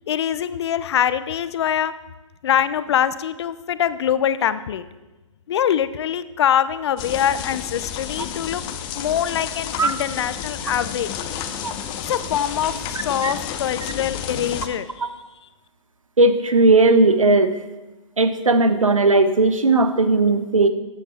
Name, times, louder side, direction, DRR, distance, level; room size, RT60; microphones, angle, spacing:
voice 1, 0.1-1.9 2.4-4.8 5.5-8.6 8.9-11.1 12.0-15.1, left 9 dB, 55° left, 14 dB, 0.7 m, -23 dB
sound 1, 7.0-14.7, left 9 dB, 30° left, 0.9 m, -31 dB
voice 2, 16.2-17.6 18.2-20.7, right 2 dB, 85° right, 10 dB, 1.1 m, -17 dB
14.5 x 8.4 x 4.2 m, 1.1 s
figure-of-eight pair, 125°, 17 cm